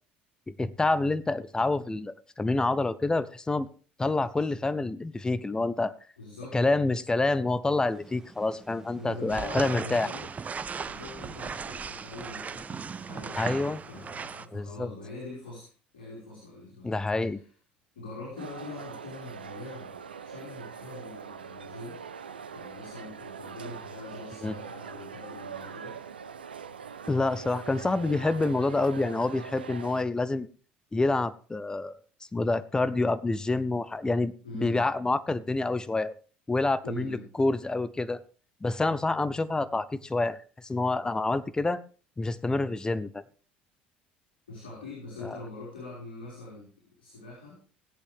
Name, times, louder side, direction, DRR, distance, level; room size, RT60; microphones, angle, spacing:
voice 1, 0.5-3.7 4.0-5.9 6.5-10.1 13.4-13.8 14.5-14.9 16.8-17.4 24.4-24.6 27.1-30.5 30.9-32.0 32.3-36.1 36.5-38.2 38.6-41.8 42.2-43.2 45.2-45.4, left 2 dB, 15° left, 16 dB, 0.8 m, -27 dB
voice 2, 6.2-6.6 8.9-10.3 10.8-13.4 13.9-16.9 17.2-17.4 18.0-22.0 22.5-26.0 34.4-34.8 36.8-37.3 44.5-47.6, left 2 dB, 75° left, -7 dB, 5.3 m, -43 dB
sound 1, 7.7-14.4, right 2 dB, 10° right, 1.5 m, -53 dB
sound 2, 9.3-14.5, right 6 dB, 30° right, 0.7 m, -37 dB
sound 3, 18.4-30.0, right 6 dB, 85° right, 0.6 m, -42 dB
18.5 x 8.4 x 3.5 m, 0.40 s
figure-of-eight pair, 65°, 5 cm